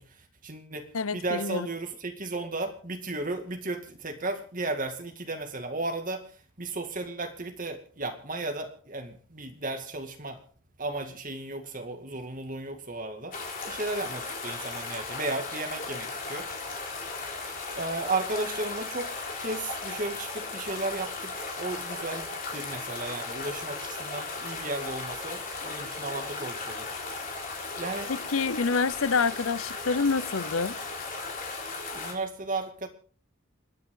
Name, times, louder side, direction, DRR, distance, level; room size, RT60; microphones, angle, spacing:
voice 1, 0.0-10.4 10.8-13.3 13.7-16.5 17.7-19.1 19.4-26.9 27.8-28.1 31.9-32.9, right 2 dB, 40° right, 2.2 m, -34 dB
voice 2, 0.9-1.7 28.1-30.8, left 4 dB, 75° left, 0.7 m, -27 dB
sound 1, 13.3-32.1, left 3 dB, 40° left, 3.8 m, -36 dB
29.0 x 9.9 x 3.8 m
head